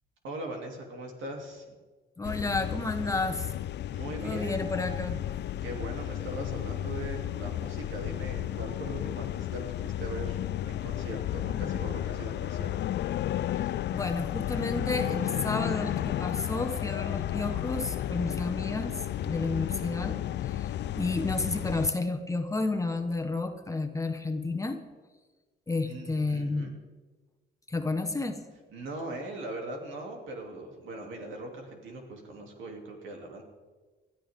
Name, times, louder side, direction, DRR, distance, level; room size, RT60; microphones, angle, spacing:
voice 1, 0.2-1.8 3.9-4.6 5.6-10.4 10.6-12.9 25.8-26.7 28.7-33.4, right 2 dB, 75° right, 1 dB, 3.1 m, -40 dB
sound 1, 2.2-21.9, left 12 dB, 60° left, 0.4 m, -33 dB
voice 2, 2.2-3.5 4.2-5.2 13.9-24.8 25.7-26.7 27.7-28.4, left 3 dB, 15° left, 5 dB, 1.3 m, -31 dB
20.0 x 13.0 x 3.8 m, 1.3 s
cardioid pair, 90°, 20 cm